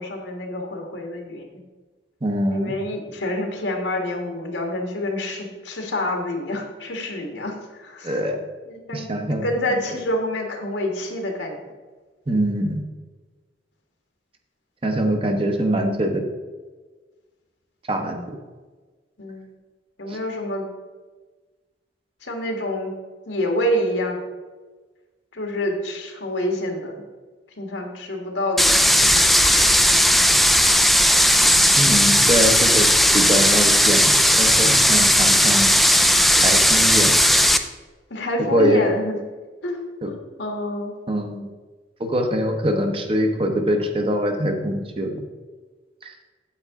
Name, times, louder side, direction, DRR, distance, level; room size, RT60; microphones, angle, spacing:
voice 1, 0.0-1.5 2.5-8.1 8.7-9.1 9.4-11.6 19.2-19.4 20.0-20.7 22.2-22.9 23.3-24.2 25.3-27.0 27.6-29.6 38.1-39.2 39.6-40.9, left 1 dB, 80° left, 2 dB, 1.7 m, -27 dB
voice 2, 2.2-2.7 8.0-8.4 8.9-9.5 12.3-12.8 14.8-16.2 17.9-18.4 20.1-20.2 31.7-32.9 33.1-35.8 36.4-37.2 38.5-38.8 40.0-40.1 41.1-41.5 42.0-45.3 46.0-46.1, equal, 30° right, 4 dB, 0.9 m, -23 dB
sound 1, 28.6-37.6, equal, ahead, 0.3 m, -16 dB
8.6 x 7.9 x 3.6 m, 1.3 s
head